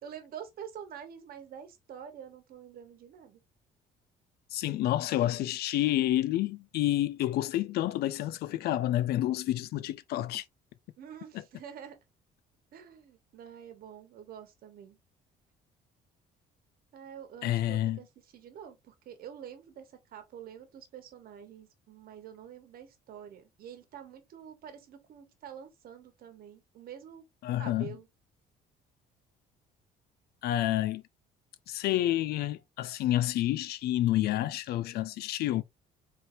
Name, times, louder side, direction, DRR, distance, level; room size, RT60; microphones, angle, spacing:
voice 1, 0.0-3.4 11.0-12.0 12.7-15.0 16.9-27.3 27.6-28.1, right 8 dB, 60° right, 1.2 m, -47 dB
voice 2, 4.5-10.4 17.4-18.0 27.4-27.9 30.4-31.0 31.7-35.6, left 14 dB, 70° left, 0.4 m, -29 dB
4.3 x 3.4 x 2.7 m
cardioid pair, 110°, 17 cm